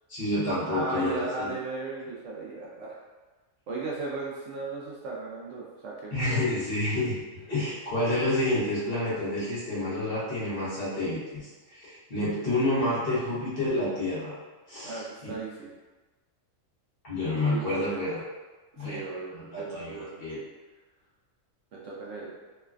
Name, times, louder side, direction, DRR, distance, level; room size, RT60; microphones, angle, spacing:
voice 1, 0.1-1.5 6.1-7.2 7.5-11.4 11.7-14.3 14.7-15.3 17.0-18.2 18.8-19.0 19.5-20.4, left 1 dB, 45° left, -11 dB, 1.2 m, -29 dB
voice 2, 0.7-3.0 3.7-6.4 14.8-15.7 17.4-18.0 18.8-20.2 21.7-22.3, right 3 dB, 70° right, -5 dB, 0.8 m, -36 dB
3.0 x 2.2 x 2.3 m, 1.2 s
omnidirectional pair, 1.4 m